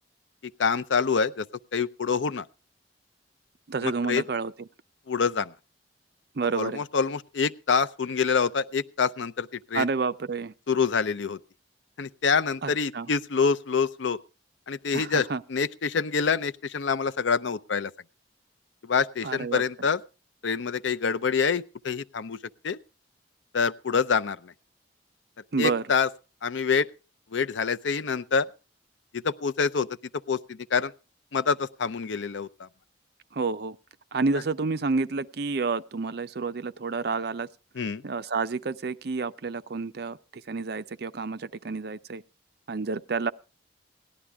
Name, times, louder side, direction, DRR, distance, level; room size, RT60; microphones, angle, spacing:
voice 1, 0.6-1.5 1.7-2.5 3.8-4.2 5.1-5.5 6.5-9.9 10.7-11.4 12.0-14.2 14.7-17.9 18.8-20.0 20.4-22.4 22.6-22.8 23.5-24.5 25.6-26.1 26.4-26.9 27.3-28.5 29.1-29.9 30.3-30.9 31.3-32.7 34.3-34.4 37.7-38.0, left 5 dB, 80° left, 0.6 m, -26 dB
voice 2, 3.7-4.5 6.4-6.8 9.7-10.5 12.6-13.1 14.9-15.4 19.2-19.6 25.5-25.8 33.3-33.8 34.1-37.5 38.0-42.2 42.7-43.3, right 4 dB, 55° right, 0.6 m, -29 dB
17.5 x 11.5 x 3.4 m
head